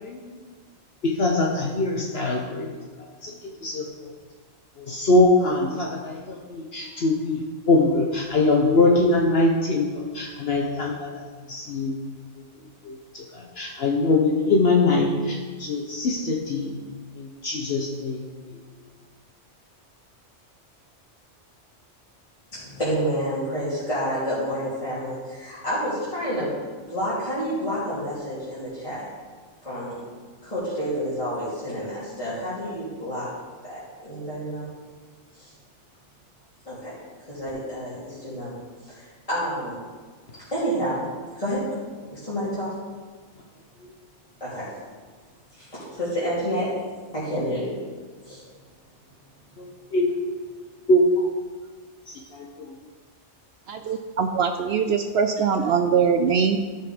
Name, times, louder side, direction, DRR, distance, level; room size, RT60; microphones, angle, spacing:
voice 1, 1.0-2.7 3.2-3.3 3.6-3.9 4.9-7.4 7.7-11.1 11.5-12.2 12.9-16.8 17.2-18.2 49.6-49.7 49.9-50.2 50.9-51.3 52.3-52.7, left 2 dB, 60° left, 1 dB, 1.1 m, -22 dB
voice 2, 22.5-26.5 26.9-29.1 29.6-30.0 30.4-33.3 33.6-34.7 35.4-35.5 36.6-36.9 37.3-38.5 38.8-39.8 40.5-41.1 41.4-41.7 42.1-42.8 44.4-44.7 45.5-46.8 47.1-47.8 48.2-48.3, equal, 30° left, -12 dB, 3.1 m, -29 dB
voice 3, 53.7-56.6, right 6 dB, 65° right, 7 dB, 0.8 m, -22 dB
13.5 x 5.8 x 5.0 m, 1.5 s
omnidirectional pair, 1.2 m